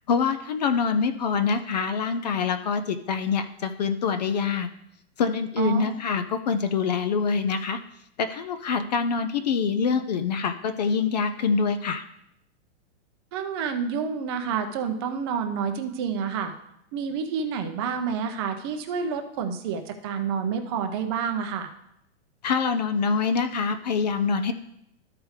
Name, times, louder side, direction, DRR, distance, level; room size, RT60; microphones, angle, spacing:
voice 1, 0.1-4.7 5.2-7.8 8.2-12.0 22.4-24.5, left 5 dB, 40° left, 9 dB, 0.4 m, -25 dB
voice 2, 5.6-5.9 13.3-16.5 16.9-21.7, right 6 dB, 25° right, 6 dB, 0.5 m, -29 dB
13.0 x 4.8 x 3.2 m, 0.78 s
hypercardioid pair, 165°, 34 cm